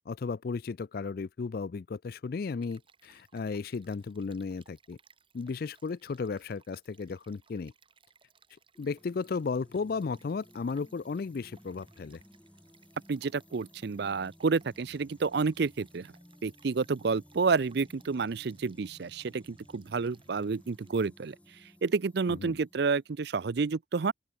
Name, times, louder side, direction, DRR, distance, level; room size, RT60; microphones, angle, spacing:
voice 1, 0.1-5.0 5.3-7.7 8.8-12.2 22.3-22.6, left 4 dB, 50° left, 0.4 m, -34 dB
Stream, 2.6-21.1, right 5 dB, 25° right, 4.0 m, -65 dB
sound 1, 8.7-23.4, equal, 5° left, 1.5 m, -58 dB
voice 2, 13.1-16.1 16.4-21.4 21.8-24.1, right 4 dB, 55° right, 0.5 m, -30 dB
open air
head